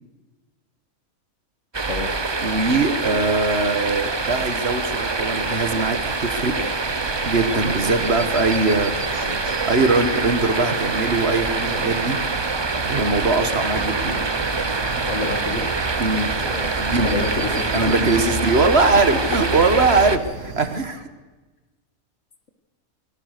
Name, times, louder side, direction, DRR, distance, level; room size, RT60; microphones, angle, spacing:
sound 1, 1.7-20.2, right 3 dB, 25° right, 0.7 m, -25 dB
voice 1, 2.4-6.5 7.2-8.9 9.7-12.2 12.8-14.2 16.0-16.3 16.8-17.3 17.7-21.1, right 3 dB, 50° right, 10 dB, 1.6 m, -21 dB
Speech synthesizer, 4.3-4.6 5.4-5.8 6.6-6.9 7.8-8.2 9.1-9.5 10.4-10.7 11.7-12.0 12.9-13.2 14.0-14.3 15.2-15.5 16.3-16.7, left 3 dB, 35° left, 1.4 m, -37 dB
sound 2, 6.8-20.8, right 4 dB, 90° right, 2.1 m, -37 dB
voice 2, 15.0-15.7 17.0-17.9, left 4 dB, 60° left, 8 dB, 2.0 m, -27 dB
22.5 x 19.0 x 6.6 m, 1.2 s
omnidirectional pair, 1.4 m